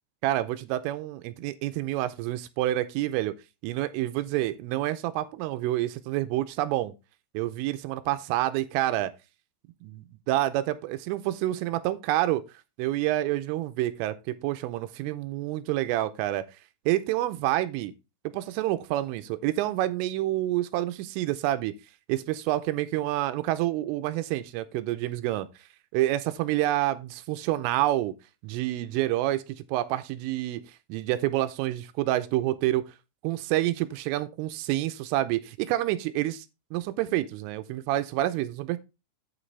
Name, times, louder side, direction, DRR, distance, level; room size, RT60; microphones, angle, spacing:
voice 1, 0.2-3.3 3.6-6.9 7.3-9.1 9.8-12.4 12.8-16.5 16.9-17.9 18.2-21.7 22.1-25.5 25.9-28.1 28.4-30.6 30.9-32.8 33.2-36.5 36.7-38.8, right 15 dB, 80° right, 3.1 m, -28 dB
8.9 x 7.6 x 3.2 m
omnidirectional pair, 5.9 m